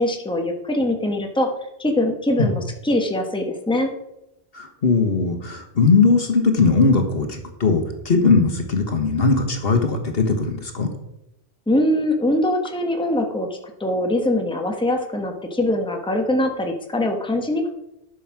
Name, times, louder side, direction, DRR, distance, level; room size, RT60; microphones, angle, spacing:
voice 1, 0.0-1.5 1.8-3.9 11.7-17.7, left 1 dB, 5° left, 3 dB, 1.2 m, -22 dB
voice 2, 4.5-10.9, left 4 dB, 60° left, 4 dB, 1.6 m, -19 dB
11.0 x 6.4 x 5.9 m, 0.87 s
omnidirectional pair, 1.1 m